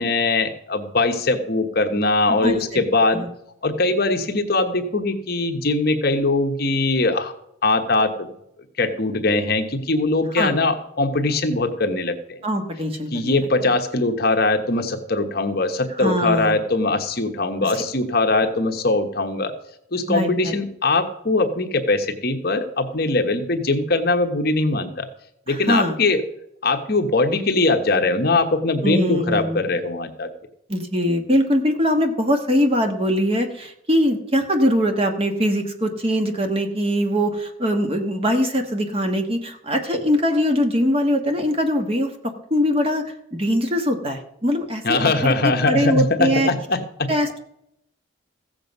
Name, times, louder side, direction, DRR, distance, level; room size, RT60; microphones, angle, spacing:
voice 1, 0.0-3.2 3.6-7.3 7.6-8.3 8.8-12.4 13.1-19.5 19.9-25.1 25.5-26.2 26.6-30.3 44.8-47.1, left 2 dB, 50° left, 6 dB, 1.1 m, -21 dB
voice 2, 12.4-13.4 16.0-16.6 20.1-20.6 25.5-25.9 28.8-29.6 30.7-42.1 42.5-43.0 43.4-46.5 47.1-47.4, equal, 30° right, 5 dB, 1.3 m, -22 dB
15.0 x 7.7 x 5.3 m, 0.77 s
head